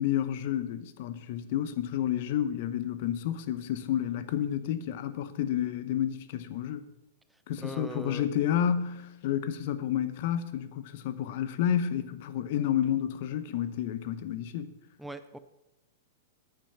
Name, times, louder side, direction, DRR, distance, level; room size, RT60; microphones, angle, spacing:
voice 1, 0.0-6.8 7.5-14.7, left 10 dB, 55° left, 0.8 m, -30 dB
voice 2, 7.3-8.3 15.0-15.4, right 2 dB, 5° right, 0.6 m, -41 dB
8.9 x 8.7 x 5.7 m
hypercardioid pair, 110°, 0 cm